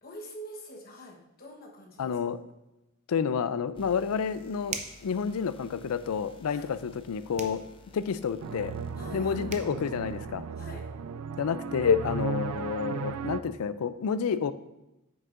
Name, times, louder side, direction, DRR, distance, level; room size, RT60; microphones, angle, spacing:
voice 1, 0.0-2.2 6.5-6.7 9.0-9.6 10.6-10.9, equal, 45° left, -1 dB, 1.1 m, -45 dB
voice 2, 2.0-2.4 3.1-7.6 7.9-8.7 9.1-10.4 11.4-14.5, left 6 dB, 80° left, 14 dB, 0.4 m, -29 dB
sound 1, 3.7-10.2, left 3 dB, 25° left, 0.5 m, -55 dB
sound 2, 4.7-5.1 7.4-7.6 9.2-9.3 9.5-9.7, right 5 dB, 30° right, 0.5 m, -38 dB
sound 3, 8.4-13.4, right 6 dB, 85° right, 0.4 m, -36 dB
8.8 x 6.3 x 2.5 m, 0.95 s
head